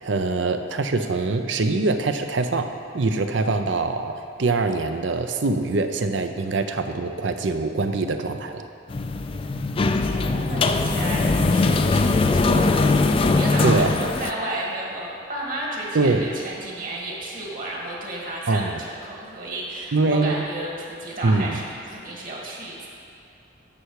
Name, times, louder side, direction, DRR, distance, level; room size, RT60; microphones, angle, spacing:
voice 1, 0.0-4.1 4.4-8.7 13.6-13.9 15.9-16.3 18.5-18.8 19.9-20.4 21.2-21.6, right 3 dB, 70° right, 7 dB, 0.6 m, -23 dB
sound 1, 8.9-14.3, left 3 dB, 30° left, 0.3 m, -21 dB
voice 2, 10.1-13.0 13.2-22.9, right 1 dB, 45° right, -2 dB, 1.8 m, -32 dB
13.0 x 5.8 x 4.8 m, 2.6 s
head